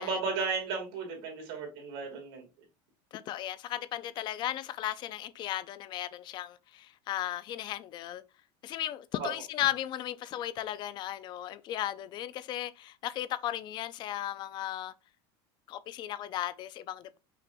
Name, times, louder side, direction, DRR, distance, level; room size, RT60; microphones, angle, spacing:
voice 1, 0.0-2.4 9.2-9.3, right 4 dB, 80° right, 2.3 m, -34 dB
voice 2, 3.1-8.2 8.6-14.9 15.7-17.2, left 13 dB, 35° left, 0.4 m, -36 dB
5.8 x 2.5 x 3.4 m
supercardioid pair, 145°, 13 cm